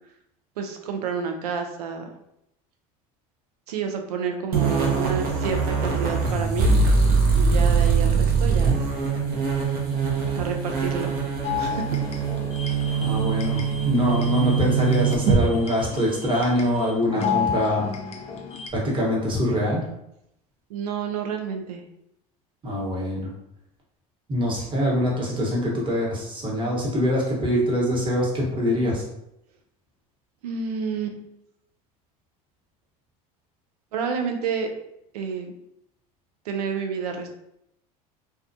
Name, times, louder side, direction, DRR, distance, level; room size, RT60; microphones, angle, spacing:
voice 1, 0.6-2.1 3.7-6.8 7.3-8.9 10.3-11.2 11.6-12.0 20.7-21.8 30.4-31.2 33.9-34.7 35.1-35.5 36.5-37.3, right 6 dB, 85° right, 4 dB, 0.5 m, -29 dB
sound 1, 4.5-15.4, right 5 dB, 50° right, 0.7 m, -22 dB
sound 2, 11.4-18.7, left 7 dB, 35° left, 0.4 m, -32 dB
voice 2, 13.0-17.9 18.7-19.8 22.6-23.3 24.3-29.0, equal, 25° right, -4 dB, 1.1 m, -24 dB
2.3 x 2.2 x 2.6 m, 0.80 s
hypercardioid pair, 85°, 19 cm